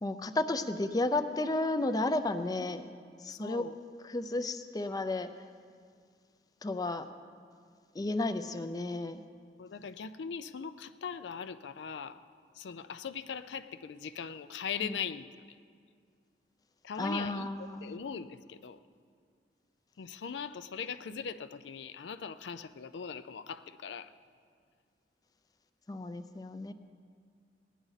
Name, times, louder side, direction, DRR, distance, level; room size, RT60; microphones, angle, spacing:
voice 1, 0.0-2.9 3.2-3.6 4.1-5.3 6.6-7.0 8.0-9.2 14.8-14.9 17.0-17.9 25.9-26.7, left 2 dB, 20° left, 9 dB, 0.4 m, -32 dB
voice 2, 3.3-3.8 9.6-12.2 12.5-15.3 16.8-18.8 20.0-24.1, left 6 dB, 90° left, 12 dB, 0.4 m, -40 dB
18.5 x 10.0 x 4.0 m, 2.1 s
head